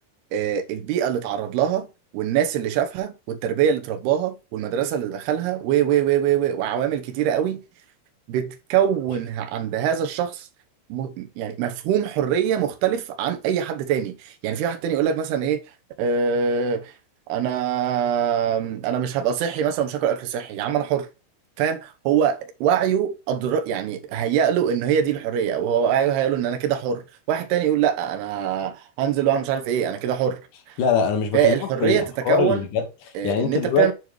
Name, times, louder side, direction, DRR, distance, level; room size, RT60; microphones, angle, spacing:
voice 1, 0.3-1.9 2.1-7.6 8.3-10.5 10.9-15.6 16.0-16.9 17.3-21.1 21.6-27.0 27.3-30.4 31.3-32.7 33.2-33.9, right 9 dB, 80° right, 2.9 m, -23 dB
voice 2, 30.8-33.9, left 7 dB, 60° left, 2.6 m, -23 dB
7.6 x 7.2 x 3.1 m
omnidirectional pair, 4.6 m